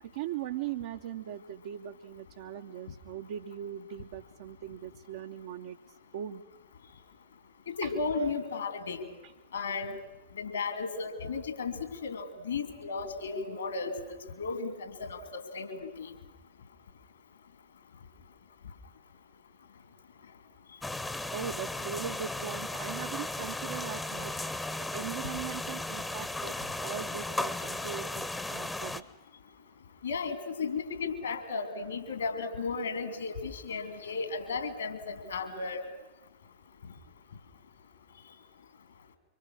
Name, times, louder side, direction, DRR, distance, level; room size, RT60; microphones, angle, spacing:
voice 1, 0.0-5.8 6.1-6.4 7.8-7.9 21.3-24.6 24.9-29.0, right 10 dB, 55° right, 4 dB, 0.9 m, -40 dB
voice 2, 7.7-9.1 9.5-10.0 10.3-13.9 14.4-16.1 30.0-35.8, left 4 dB, 70° left, 9 dB, 3.2 m, -34 dB
sound 1, 20.8-29.0, left 2 dB, 10° left, 1.0 m, -36 dB
25.0 x 24.5 x 6.3 m, 1.0 s
figure-of-eight pair, 90°, 0 cm